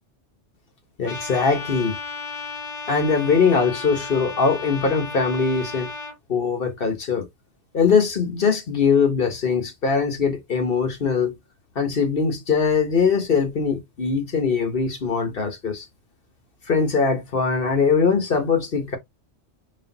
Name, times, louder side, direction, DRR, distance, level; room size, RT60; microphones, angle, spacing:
Trumpet, 1.0-6.1, left 4 dB, 75° left, 1.9 m, -34 dB
voice 1, 1.0-2.0 2.9-5.9 6.3-7.3 7.7-11.3 11.7-15.8 16.7-19.0, left 5 dB, 50° left, 1.4 m, -21 dB
5.3 x 3.3 x 2.8 m
omnidirectional pair, 1.3 m